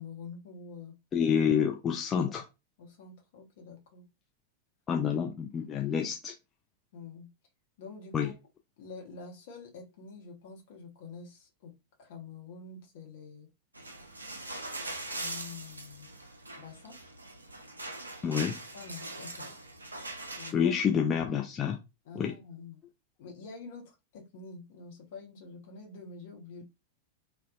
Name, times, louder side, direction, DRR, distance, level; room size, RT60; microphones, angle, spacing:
voice 1, 0.0-0.9 2.8-4.1 6.9-7.3 7.8-8.3 8.8-11.7 12.0-13.5 15.1-16.1 16.6-17.0 18.7-19.5 20.4-20.8 22.0-22.8 23.2-26.6, left 4 dB, 55° left, 0.8 m, -47 dB
voice 2, 1.1-2.5 4.9-6.3 8.1-8.3 18.2-18.6 20.5-21.8 22.2-22.3, left 7 dB, 25° left, 0.3 m, -28 dB
sound 1, 13.7-20.5, right 2 dB, 80° right, 0.4 m, -41 dB
2.5 x 2.1 x 2.2 m
figure-of-eight pair, 90°, 0 cm